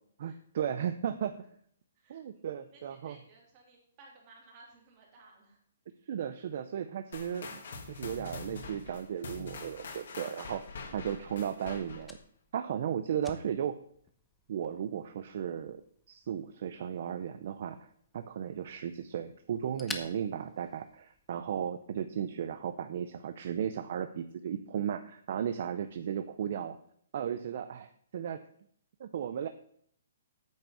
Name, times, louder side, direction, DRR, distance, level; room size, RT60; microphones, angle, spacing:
voice 1, 0.2-1.4 2.1-3.2 6.1-10.7 10.9-12.2 12.5-13.8 14.5-15.8 16.1-17.9 18.1-26.8 27.1-28.4 29.0-29.5, right 9 dB, 45° right, 10 dB, 0.5 m, -35 dB
voice 2, 1.9-5.6, right 3 dB, 25° right, -1 dB, 2.8 m, -58 dB
sound 1, 7.1-12.2, left 4 dB, 55° left, 1.8 m, -44 dB
Fire, 9.9-21.4, left 3 dB, 5° left, 0.6 m, -51 dB
8.9 x 6.0 x 6.9 m, 0.64 s
hypercardioid pair, 175°, 0 cm